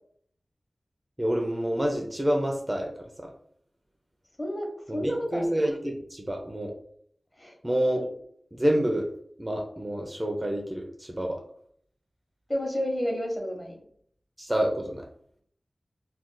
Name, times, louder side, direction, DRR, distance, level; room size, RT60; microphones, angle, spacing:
voice 1, 1.2-3.3 4.9-6.7 7.6-8.2 8.5-9.1 9.4-11.4 14.4-15.1, equal, 20° right, 2 dB, 0.4 m, -28 dB
voice 2, 4.4-5.5 7.4-7.5 12.5-13.7, equal, 25° left, 0 dB, 0.9 m, -30 dB
2.4 x 2.2 x 3.7 m, 0.64 s
wide cardioid pair, 75°, 0 cm